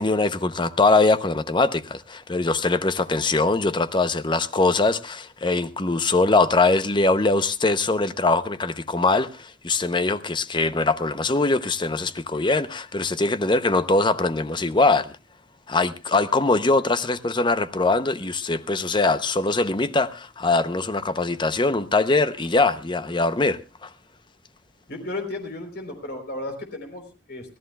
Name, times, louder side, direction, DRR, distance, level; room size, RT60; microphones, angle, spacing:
voice 1, 0.0-15.1 15.7-23.9, left 3 dB, 25° left, 0.7 m, -22 dB
voice 2, 24.9-27.6, left 2 dB, 55° left, 3.7 m, -34 dB
25.0 x 15.5 x 2.3 m
head